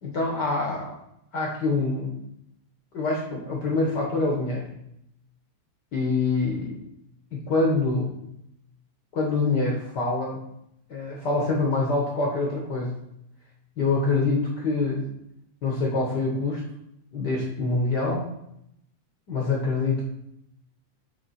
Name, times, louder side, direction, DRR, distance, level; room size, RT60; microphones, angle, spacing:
voice 1, 0.0-0.9 1.3-2.1 2.9-4.7 5.9-6.8 7.4-8.1 9.1-10.4 10.9-13.0 13.8-15.0 15.6-16.6 17.1-18.2 19.3-20.0, left 3 dB, 55° left, -2 dB, 1.2 m, -25 dB
8.8 x 3.4 x 4.2 m, 0.77 s
omnidirectional pair, 3.3 m